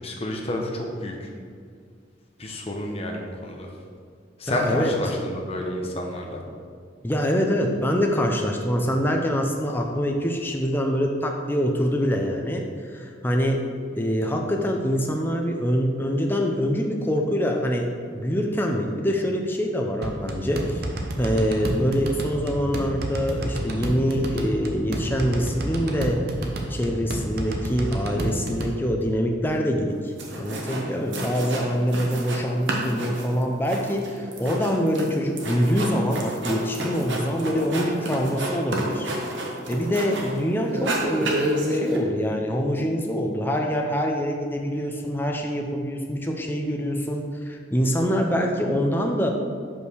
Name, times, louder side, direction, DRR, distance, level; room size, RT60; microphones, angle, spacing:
voice 1, 0.0-1.3 2.4-3.7 4.4-6.4, left 1 dB, 30° left, 0 dB, 0.9 m, -29 dB
voice 2, 4.5-4.9 7.0-13.6 13.9-17.9 18.1-20.8 21.2-26.2 26.7-39.1 39.7-49.3, equal, 10° left, 2 dB, 0.5 m, -25 dB
sound 1, 20.0-28.7, right 1 dB, 55° right, 0.8 m, -30 dB
sound 2, 29.9-30.0 30.2-30.8 31.1-32.4 32.7-40.4 40.7-42.0, right 1 dB, 70° right, 1.1 m, -29 dB
5.4 x 4.9 x 6.2 m, 2.1 s
head